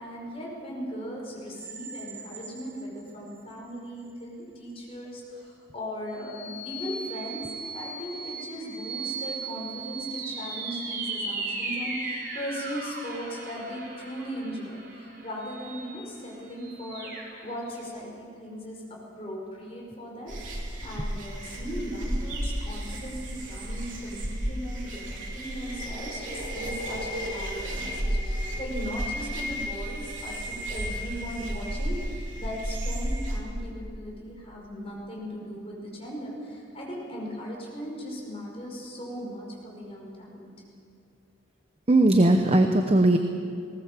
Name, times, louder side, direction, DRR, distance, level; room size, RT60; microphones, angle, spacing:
voice 1, 0.0-7.5 7.7-18.8 19.2-40.6, equal, 30° left, -3 dB, 5.3 m, -38 dB
sound 1, 1.6-3.5 4.0-4.1 6.1-17.8, right 3 dB, 60° right, 4.4 m, -37 dB
sound 2, 20.3-33.4, equal, 90° right, 3.5 m, -33 dB
voice 2, 41.9-43.2, right 1 dB, 35° right, 6 dB, 0.9 m, -19 dB
19.5 x 18.5 x 7.5 m, 2.4 s
head